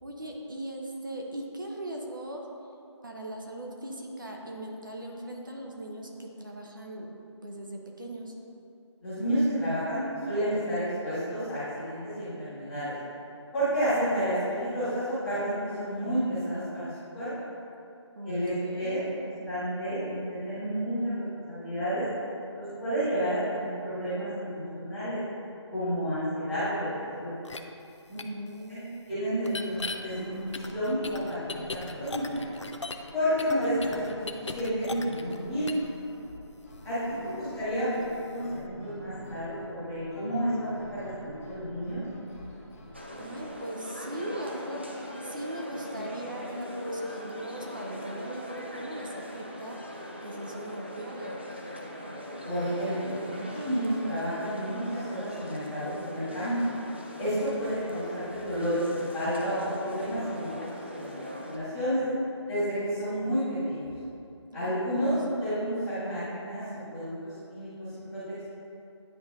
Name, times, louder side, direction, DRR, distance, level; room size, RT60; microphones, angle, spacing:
voice 1, 0.0-2.5 3.0-7.1 7.4-8.3 18.2-19.0 28.3-29.0 37.2-38.0 43.2-44.8 45.2-49.8 50.2-51.4 64.5-65.2, right 1 dB, 45° right, 0 dB, 0.7 m, -39 dB
voice 2, 9.0-12.9 13.5-17.3 18.2-22.0 22.5-25.2 25.7-27.3 28.1-28.2 29.1-32.4 33.1-35.7 36.8-36.9 37.2-37.9 38.3-42.0 52.4-56.5 57.2-61.0 61.5-62.0 62.4-63.9 64.5-68.4, equal, ahead, -20 dB, 0.8 m, -31 dB
sound 1, 27.5-27.6 28.2-28.3 29.4-30.0 30.5-33.1 33.4-35.4 35.7-35.9, left 3 dB, 75° left, 0.5 m, -37 dB
sound 2, 29.7-43.6, left 1 dB, 30° left, 1.0 m, -47 dB
sound 3, 42.9-61.6, equal, 25° right, 0.3 m, -40 dB
10.0 x 4.1 x 2.5 m, 2.7 s
figure-of-eight pair, 175°, 15 cm